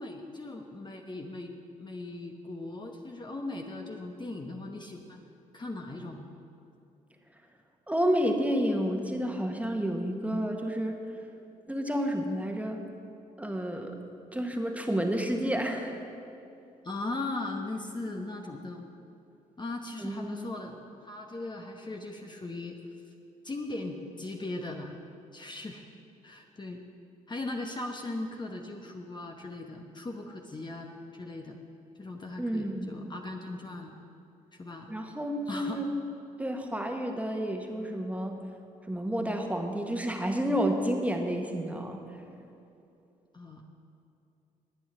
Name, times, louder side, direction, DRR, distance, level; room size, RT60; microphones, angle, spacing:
voice 1, 0.0-1.5 1.8-5.2 5.5-6.3 16.8-18.9 19.6-22.8 23.4-25.0 25.3-25.8 26.2-26.8 27.3-31.6 31.9-34.0 34.5-34.9 35.5-35.8 43.3-43.6, left 2 dB, 25° left, 2 dB, 1.1 m, -38 dB
voice 2, 7.9-11.0 11.7-12.8 13.4-14.0 14.3-16.0 20.0-20.5 32.4-33.0 34.9-35.9 36.4-38.4 38.9-42.0, equal, 10° right, 3 dB, 1.6 m, -30 dB
20.0 x 9.0 x 3.8 m, 2.7 s
hypercardioid pair, 45°, 18 cm